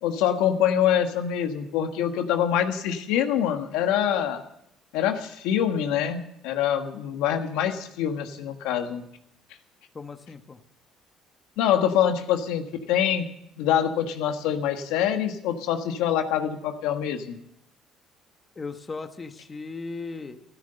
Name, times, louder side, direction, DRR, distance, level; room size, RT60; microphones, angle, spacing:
voice 1, 0.0-4.4 4.9-9.0 11.6-13.2 13.6-17.4, left 9 dB, 90° left, 6 dB, 1.5 m, -25 dB
voice 2, 9.9-10.6 18.5-20.4, left 4 dB, 25° left, 7 dB, 1.3 m, -37 dB
14.0 x 13.0 x 6.8 m, 0.78 s
cardioid pair, 105°, 0 cm